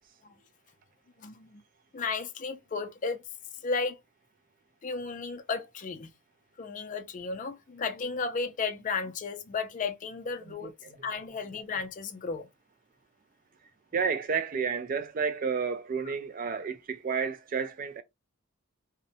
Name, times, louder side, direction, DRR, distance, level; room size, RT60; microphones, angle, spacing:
voice 1, 1.2-1.6 1.9-3.2 3.6-4.0 4.8-6.1 6.6-10.7 11.0-12.5, left 4 dB, 40° left, 0.4 m, -34 dB
voice 2, 10.5-11.0 11.3-11.4 13.9-18.0, right 5 dB, 40° right, 0.3 m, -31 dB
2.6 x 2.1 x 2.6 m
head